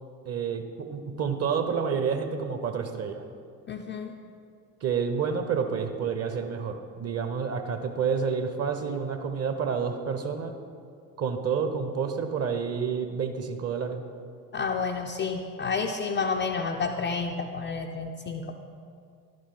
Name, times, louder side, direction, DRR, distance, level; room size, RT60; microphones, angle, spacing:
voice 1, 0.2-3.2 4.8-10.6 11.2-14.0, right 6 dB, 30° right, 7 dB, 0.8 m, -29 dB
voice 2, 3.7-4.1 14.5-18.5, left 5 dB, 25° left, 3 dB, 0.5 m, -30 dB
11.5 x 5.1 x 5.6 m, 2.3 s
figure-of-eight pair, 55°, 50 cm